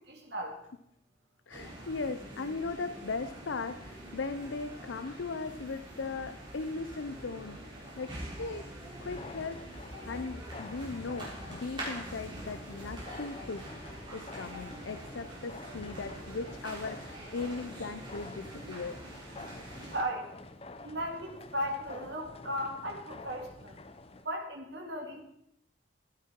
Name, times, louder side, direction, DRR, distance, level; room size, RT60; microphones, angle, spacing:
voice 1, 0.1-0.6 19.9-20.3 20.8-23.8 24.2-25.2, equal, 60° right, 2 dB, 2.2 m, -36 dB
voice 2, 1.5-8.7 9.0-9.6 10.1-13.7 14.1-19.0, left 4 dB, 75° left, 10 dB, 0.6 m, -38 dB
sound 1, 1.5-20.0, right 1 dB, 25° right, 3.8 m, -45 dB
sound 2, 9.0-24.3, left 2 dB, 30° left, 0.7 m, -48 dB
13.0 x 11.5 x 4.5 m, 0.78 s
head